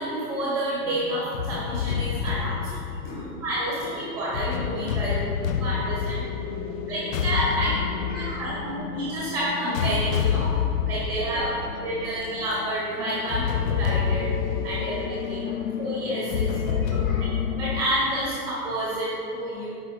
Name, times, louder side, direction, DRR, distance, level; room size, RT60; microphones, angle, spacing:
voice 1, 0.0-2.6 3.4-5.2 5.5-6.2 6.9-7.7 8.0-10.5 10.8-11.4 11.8-14.3 14.6-17.0 17.5-19.7, right 1 dB, 5° right, -7 dB, 1.2 m, -29 dB
sound 1, 0.9-17.8, left 8 dB, 55° left, 0.5 m, -28 dB
voice 2, 3.0-3.4 3.8-3.9 4.9-8.9 11.3-11.5 11.9-12.1 14.8-15.9 16.3-17.8, left 1 dB, 20° left, -3 dB, 1.2 m, -42 dB
9.6 x 4.8 x 2.8 m, 2.7 s
figure-of-eight pair, 110°, 49 cm